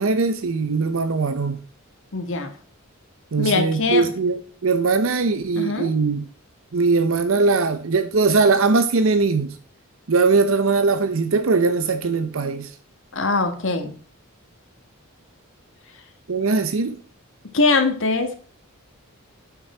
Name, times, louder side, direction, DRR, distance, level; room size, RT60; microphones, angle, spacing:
voice 1, 0.0-1.6 3.3-4.4 4.6-6.3 6.7-9.6 10.1-12.7 16.3-17.0, right 4 dB, 65° right, 0.7 m, -20 dB
voice 2, 2.1-2.5 3.4-4.1 5.5-5.9 13.1-13.9 17.5-18.3, left 3 dB, 60° left, 1.7 m, -22 dB
8.4 x 6.1 x 4.3 m
head